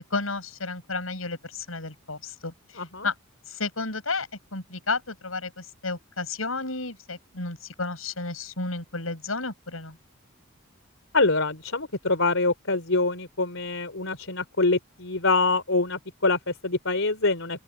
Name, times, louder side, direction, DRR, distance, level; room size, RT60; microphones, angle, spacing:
voice 1, 0.1-3.1 3.5-10.0, left 3 dB, 90° left, 7.9 m, -32 dB
voice 2, 2.8-3.1 11.1-17.6, left 3 dB, 70° left, 4.1 m, -25 dB
open air
head